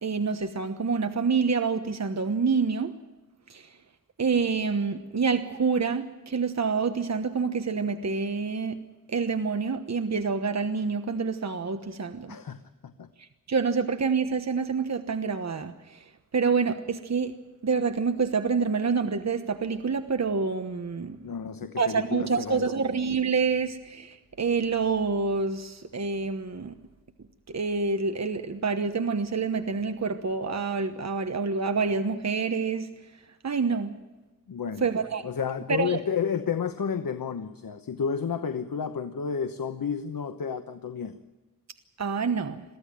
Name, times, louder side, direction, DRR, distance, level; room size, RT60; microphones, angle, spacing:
voice 1, 0.0-2.9 3.5-3.7 4.2-8.8 9.1-12.4 13.2-16.0 16.3-17.3 17.6-21.2 21.8-26.8 27.5-32.9 33.4-34.0 34.8-35.2 35.7-36.0 42.0-42.6, right 5 dB, 55° right, 8 dB, 1.1 m, -27 dB
voice 2, 12.3-13.1 21.2-22.7 34.5-34.9 35.2-41.2, left 6 dB, 90° left, 9 dB, 1.0 m, -31 dB
23.0 x 14.5 x 9.0 m, 1.1 s
wide cardioid pair, 100°, 33 cm